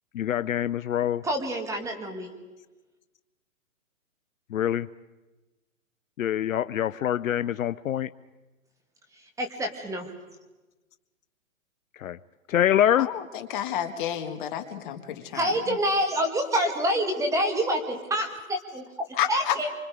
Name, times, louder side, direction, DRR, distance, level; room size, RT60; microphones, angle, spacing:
voice 1, 0.1-1.2 4.5-4.9 6.2-8.1 12.0-12.2 12.5-13.1, left 11 dB, 70° left, 0.7 m, -25 dB
voice 2, 1.2-2.3 9.1-10.1 15.3-19.7, equal, 5° right, 1.8 m, -27 dB
voice 3, 13.0-15.5 19.2-19.6, left 10 dB, 35° left, 1.8 m, -30 dB
26.0 x 25.0 x 4.9 m
hypercardioid pair, 145°, 42 cm